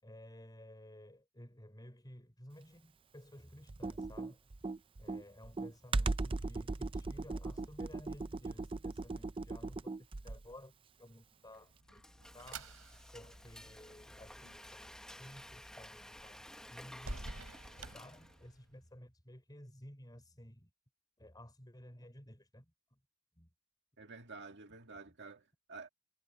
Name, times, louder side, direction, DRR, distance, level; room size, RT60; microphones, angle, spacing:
voice 1, 0.0-4.6 5.0-9.9 10.2-12.0 12.3-12.7 13.1-17.3 17.8-20.7 21.2-23.0 23.4-23.5, left 1 dB, 20° left, 5.2 m, -55 dB
Computer keyboard, 3.7-10.5, right 3 dB, 25° right, 0.4 m, -38 dB
sound 1, 11.4-18.8, right 2 dB, 70° right, 4.1 m, -51 dB
Frying (food), 11.5-18.6, left 1 dB, 5° left, 0.9 m, -53 dB
voice 2, 24.0-25.9, right 4 dB, 50° right, 2.0 m, -50 dB
head